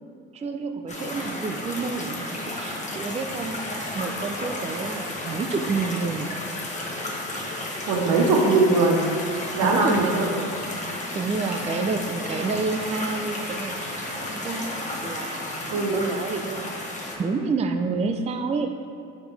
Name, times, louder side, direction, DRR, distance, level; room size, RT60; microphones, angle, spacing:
voice 1, 0.3-6.3 9.6-10.5 11.1-16.7 17.2-18.9, right 4 dB, 20° right, 5 dB, 0.4 m, -29 dB
sound 1, 0.9-17.2, left 1 dB, 20° left, 1.2 m, -33 dB
voice 2, 7.9-9.0 9.5-10.3 15.7-16.0, right 3 dB, 85° right, 0 dB, 1.2 m, -20 dB
7.0 x 5.1 x 3.3 m, 2.4 s
supercardioid pair, 90°, 32 cm